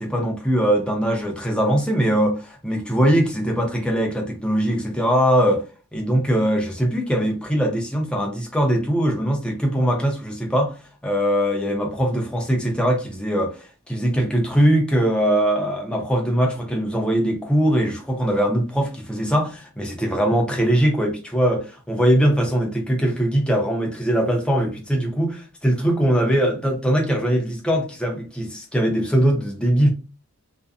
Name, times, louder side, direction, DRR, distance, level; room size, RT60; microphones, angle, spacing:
voice 1, 0.0-5.6 5.9-10.8 11.0-29.9, equal, 5° left, 0.5 m, -21 dB
2.5 x 2.1 x 2.4 m
head